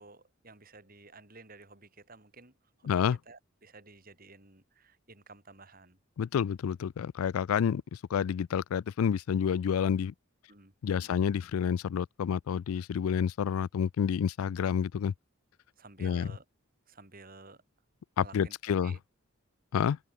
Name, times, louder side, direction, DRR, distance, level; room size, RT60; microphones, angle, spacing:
voice 1, 0.0-6.0 10.5-10.7 11.0-11.1 15.8-16.4 16.9-17.6 18.2-19.0, right 3 dB, 40° right, 4.8 m, -53 dB
voice 2, 2.9-3.2 6.2-10.1 10.8-15.1 16.0-16.3 18.2-18.9 19.7-20.0, left 7 dB, 85° left, 0.3 m, -29 dB
open air
head